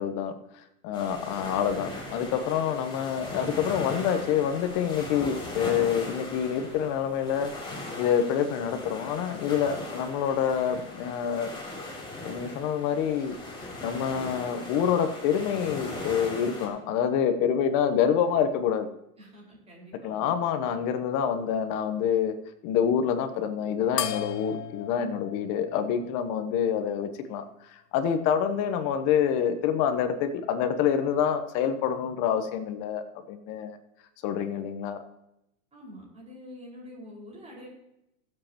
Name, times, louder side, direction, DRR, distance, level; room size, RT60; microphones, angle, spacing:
voice 1, 0.0-7.5 8.0-11.5 12.2-13.4 13.8-18.9 20.0-22.4 22.6-33.8 34.2-35.0, left 8 dB, 40° left, 9 dB, 1.1 m, -27 dB
sound 1, 0.9-16.7, left 2 dB, 10° left, 3.5 m, -39 dB
voice 2, 19.2-20.2 35.7-37.7, left 1 dB, 15° right, -5 dB, 5.3 m, -46 dB
sound 2, 24.0-26.8, left 10 dB, 90° left, 0.9 m, -36 dB
21.0 x 7.9 x 3.0 m, 0.85 s
hypercardioid pair, 130°, 47 cm